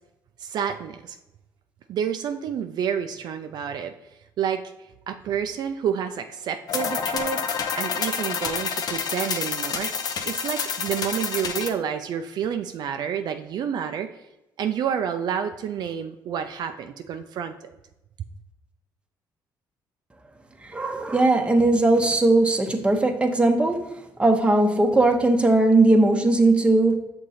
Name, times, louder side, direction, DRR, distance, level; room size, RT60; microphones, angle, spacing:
voice 1, 0.4-1.2 1.9-3.9 4.4-4.6 5.1-14.1 14.6-17.7, right 8 dB, 60° right, 7 dB, 0.4 m, -29 dB
sound 1, 6.7-11.7, left 6 dB, 55° left, 0.7 m, -28 dB
voice 2, 20.6-23.9 24.2-27.0, right 2 dB, 15° right, 4 dB, 0.9 m, -19 dB
6.3 x 3.8 x 4.1 m, 0.94 s
cardioid pair, 85°, 8 cm